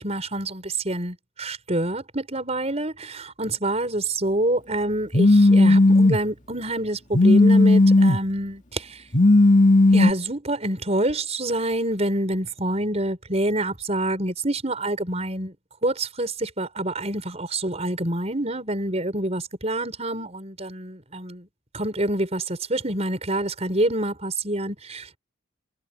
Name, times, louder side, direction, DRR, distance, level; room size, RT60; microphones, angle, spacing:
voice 1, 0.0-9.0 9.9-15.6 15.8-21.5 21.7-25.2, right 1 dB, 35° right, 5.4 m, -27 dB
Telephone, 5.1-6.2 7.1-8.2 9.1-10.1, left 2 dB, 40° left, 2.2 m, -15 dB
head